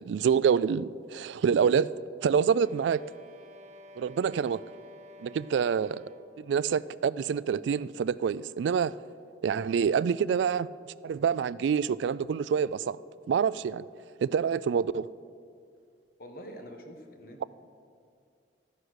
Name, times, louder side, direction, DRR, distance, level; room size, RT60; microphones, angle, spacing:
voice 1, 0.0-1.9 2.2-3.0 4.0-4.6 5.2-6.1 6.4-9.0 9.4-10.7 11.0-13.0 13.3-13.8 14.2-15.1, right 7 dB, 80° right, 0.3 m, -26 dB
sound 1, 2.3-6.5, equal, 40° right, 1.0 m, -51 dB
voice 2, 16.2-17.5, equal, 50° left, 1.5 m, -45 dB
13.0 x 9.7 x 6.3 m
head